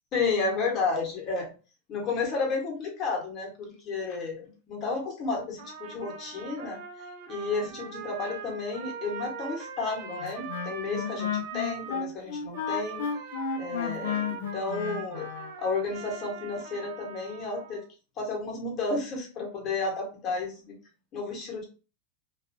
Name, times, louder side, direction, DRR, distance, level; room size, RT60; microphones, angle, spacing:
voice 1, 0.1-1.5 1.9-6.8 7.3-13.1 13.6-15.3 15.6-17.8 18.2-20.8 21.1-21.6, left 4 dB, 35° left, 0 dB, 1.0 m, -32 dB
Trumpet, 5.6-12.0 12.5-17.8, right 6 dB, 60° right, 0.5 m, -41 dB
Wind instrument woodwind instrument, 10.2-15.5, left 7 dB, 80° left, 0.3 m, -33 dB
2.4 x 2.3 x 2.6 m, 0.35 s
hypercardioid pair, 125°, 0 cm